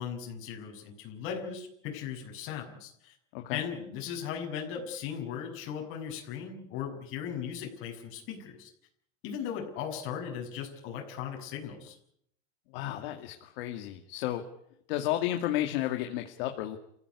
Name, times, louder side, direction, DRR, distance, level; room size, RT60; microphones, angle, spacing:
voice 1, 0.0-3.1 3.5-8.7 9.2-12.0, left 8 dB, 40° left, 1 dB, 6.8 m, -38 dB
voice 2, 12.7-14.4 14.9-16.8, left 13 dB, 60° left, 4 dB, 2.3 m, -32 dB
28.0 x 15.0 x 9.7 m, 0.72 s
supercardioid pair, 175°, 32 cm